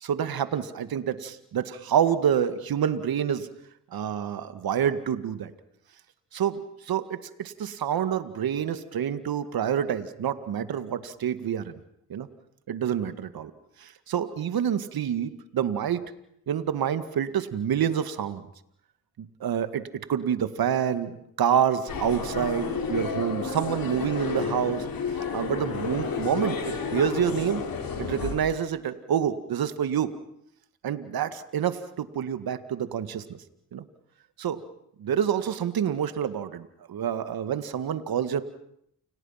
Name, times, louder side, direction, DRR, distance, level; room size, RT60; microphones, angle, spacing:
voice 1, 0.0-3.5 3.9-5.5 6.3-11.8 12.1-12.3 12.7-13.5 13.8-16.0 16.5-18.4 19.2-19.8 20.1-24.9 25.3-27.6 28.0-30.1 30.8-33.4 33.7-33.8 34.4-34.6 35.0-38.4, right 9 dB, 70° right, 11 dB, 2.0 m, -27 dB
sound 1, 21.9-28.4, left 5 dB, 65° left, 5.2 m, -31 dB
sound 2, 24.1-24.9 25.5-26.7, left 3 dB, 40° left, 5.6 m, -45 dB
30.0 x 27.5 x 5.8 m, 0.75 s
supercardioid pair, 45°, 37 cm